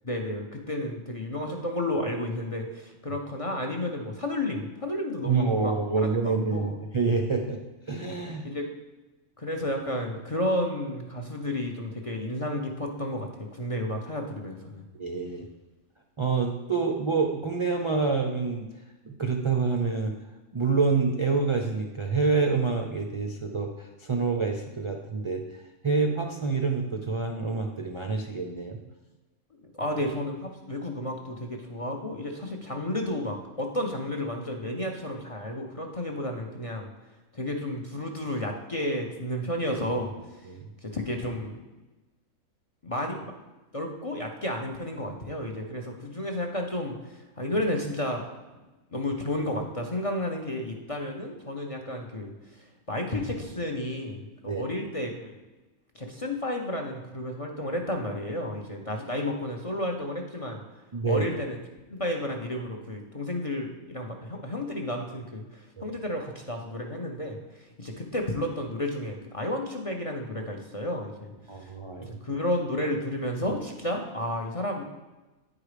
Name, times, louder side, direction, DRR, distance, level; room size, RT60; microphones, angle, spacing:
voice 1, 0.0-6.8 8.4-8.7 9.4-14.8 29.5-36.9 37.3-40.5 40.8-41.6 42.8-43.3 43.7-48.2 48.9-55.3 55.9-60.6 61.1-61.6 61.9-71.3 71.6-71.7 72.0-74.8, left 1 dB, 35° left, 1 dB, 0.6 m, -32 dB
voice 2, 5.2-7.6 7.9-8.5 14.9-15.5 16.2-18.7 19.1-20.1 20.5-28.8 40.5-40.7 54.5-54.6 60.9-61.2 65.8-65.9 71.5-72.2, right 4 dB, 45° right, 2 dB, 0.4 m, -27 dB
9.3 x 4.8 x 4.9 m, 1.1 s
omnidirectional pair, 1.5 m